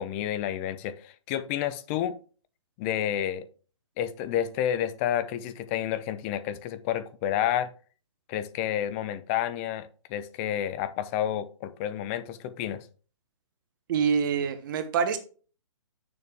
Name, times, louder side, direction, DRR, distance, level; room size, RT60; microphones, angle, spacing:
voice 1, 0.0-2.2 2.8-3.5 4.0-7.7 8.3-12.8, left 10 dB, 25° left, 0.6 m, -30 dB
voice 2, 13.9-15.2, right 6 dB, 40° right, 1.3 m, -25 dB
8.5 x 6.8 x 3.5 m
hypercardioid pair, 150°, 17 cm